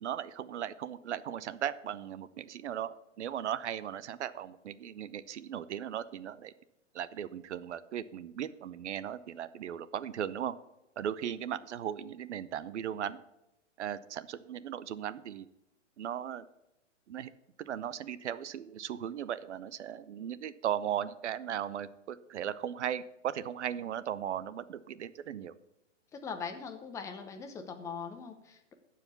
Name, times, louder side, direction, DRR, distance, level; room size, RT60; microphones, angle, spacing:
voice 1, 0.0-6.5 6.9-10.6 11.0-13.2 13.8-15.5 16.0-16.5 17.1-17.3 17.6-25.5, right 10 dB, 70° right, 15 dB, 0.7 m, -37 dB
voice 2, 26.1-28.7, left 5 dB, 10° left, 5 dB, 0.7 m, -41 dB
14.0 x 4.9 x 6.8 m, 0.93 s
hypercardioid pair, 145°, 36 cm